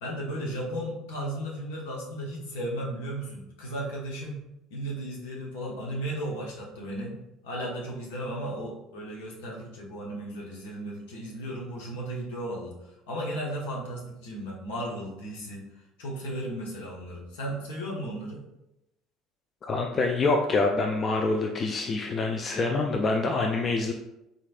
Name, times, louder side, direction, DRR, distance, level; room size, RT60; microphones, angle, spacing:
voice 1, 0.0-4.4 4.7-7.1 7.4-15.7 16.0-18.4, right 1 dB, 70° left, -2 dB, 1.0 m, -35 dB
voice 2, 19.6-23.9, left 3 dB, 35° left, 2 dB, 0.4 m, -26 dB
4.0 x 3.1 x 2.5 m, 0.88 s
figure-of-eight pair, 60°, 0 cm